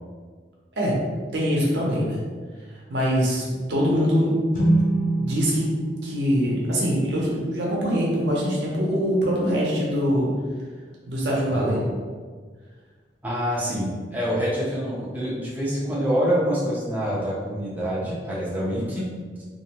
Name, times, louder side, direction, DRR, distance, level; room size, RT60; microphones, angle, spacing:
voice 1, 1.3-2.2 2.9-4.4 5.2-5.7 6.0-10.3 11.1-11.8, equal, 80° right, -4 dB, 0.7 m, -23 dB
sound 1, 4.5-8.1, right 2 dB, 45° left, 0.6 m, -27 dB
voice 2, 11.5-11.9 13.2-19.1, equal, 10° right, -8 dB, 0.4 m, -26 dB
2.5 x 2.1 x 2.8 m, 1.5 s
head